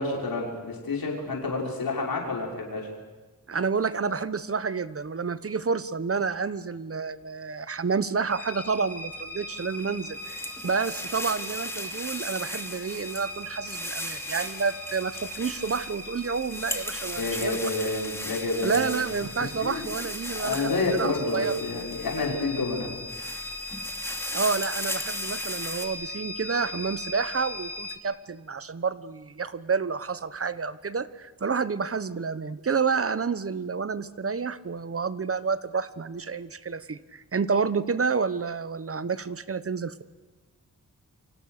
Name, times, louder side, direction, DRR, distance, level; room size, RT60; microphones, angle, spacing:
voice 1, 0.0-2.9 17.2-19.0 19.6-19.9 20.3-23.0, left 2 dB, 80° left, -1 dB, 6.2 m, -29 dB
voice 2, 3.5-17.6 18.6-21.6 24.3-40.0, right 5 dB, 40° right, 15 dB, 1.1 m, -29 dB
sound 1, 8.3-28.0, left 2 dB, 60° left, 3.5 m, -39 dB
sound 2, 9.6-22.4 22.9-25.9, left 1 dB, 5° left, 2.8 m, -37 dB
29.5 x 25.0 x 6.7 m, 1.3 s
wide cardioid pair, 120°, 35 cm